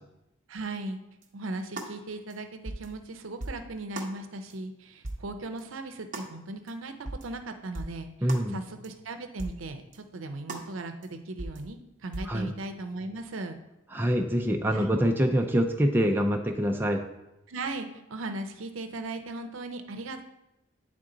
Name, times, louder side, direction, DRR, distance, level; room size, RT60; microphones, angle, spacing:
voice 1, 0.5-1.0 1.3-13.6 14.7-15.0 17.5-20.2, right 2 dB, 80° right, 7 dB, 0.6 m, -37 dB
sound 1, 1.2-1.3 1.8-1.9 2.3-2.4 2.7-2.9 3.4-3.6 4.0-4.1 4.5-4.6 5.0-5.2 5.6-5.7 6.1-6.3 6.7-6.8 7.1-7.3 7.7-8.0 8.3-8.5 8.8-8.9 9.4-9.6 9.9-10.0 10.5-10.7 11.0-11.1 11.4-11.6 12.1-12.3, right 2 dB, 40° right, 0.7 m, -37 dB
voice 2, 8.2-8.6 12.3-12.5 13.9-17.0, equal, 10° right, 2 dB, 0.4 m, -25 dB
8.9 x 3.6 x 3.8 m, 0.96 s
head